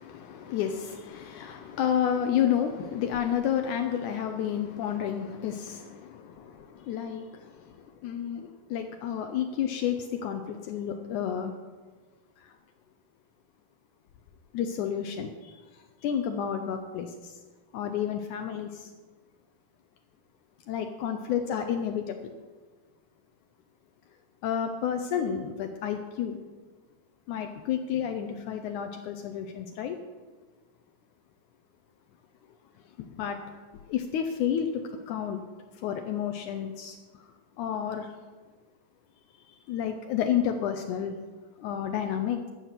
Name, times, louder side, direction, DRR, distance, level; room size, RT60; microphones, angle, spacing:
voice 1, 0.0-11.6 12.4-12.6 14.5-17.4 17.7-18.9 20.7-22.3 24.4-26.4 27.3-30.0 33.0-33.6 33.9-35.4 35.7-38.1 39.4-41.2 41.6-42.5, left 9 dB, 90° left, 6 dB, 1.7 m, -31 dB
14.0 x 5.9 x 8.1 m, 1.4 s
omnidirectional pair, 4.4 m